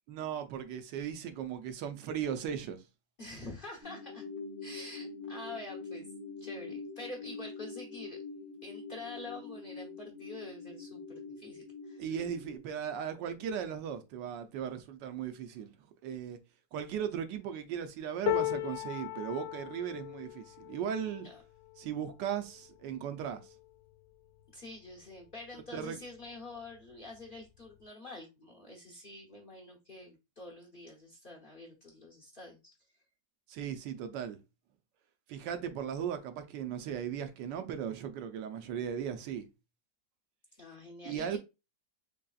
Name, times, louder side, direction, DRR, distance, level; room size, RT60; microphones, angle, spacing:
voice 1, 0.1-2.8 12.0-15.7 16.0-16.4 16.7-21.3 21.8-23.5 25.7-26.0 33.5-34.4 35.3-39.5 41.0-41.4, right 8 dB, 75° right, 1.3 m, -37 dB
voice 2, 3.2-4.3 4.6-6.1 6.4-8.2 8.6-12.1 21.2-21.4 24.5-33.0 40.6-41.4, left 2 dB, 40° left, 0.7 m, -47 dB
sound 1, 3.8-12.6, left 4 dB, 45° right, 1.0 m, -44 dB
sound 2, 18.3-24.4 25.0-25.2 25.5-26.2 27.2-27.3, left 14 dB, 80° left, 1.2 m, -39 dB
4.0 x 3.4 x 2.3 m
omnidirectional pair, 2.0 m